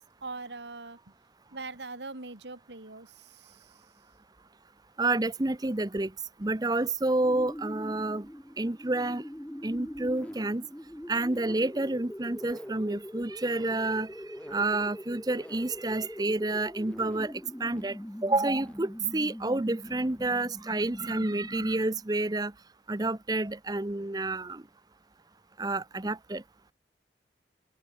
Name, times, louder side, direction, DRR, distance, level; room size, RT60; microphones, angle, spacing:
voice 1, 0.2-1.0 1.5-3.7, right 3 dB, 85° right, 2.5 m, -41 dB
voice 2, 5.0-6.1 6.4-8.3 8.6-9.2 9.6-10.6 11.1-14.1 14.5-17.3 17.6-22.5 22.9-24.6 25.6-26.4, right 2 dB, 20° right, 0.8 m, -29 dB
sound 1, 7.2-22.0, equal, 10° left, 0.9 m, -43 dB
open air
head